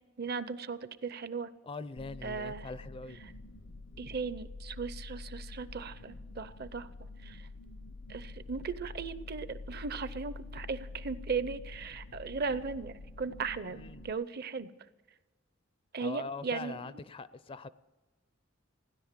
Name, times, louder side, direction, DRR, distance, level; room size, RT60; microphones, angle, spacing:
voice 1, 0.2-1.5 2.2-2.7 3.2-3.3 4.0-7.5 8.1-14.7 15.9-16.9, right 5 dB, 55° right, 0.7 m, -37 dB
voice 2, 1.6-3.2 13.7-14.1 16.0-17.7, left 3 dB, 30° left, 0.4 m, -42 dB
sound 1, 2.0-14.1, left 3 dB, 70° left, 0.7 m, -46 dB
16.5 x 10.5 x 7.5 m
head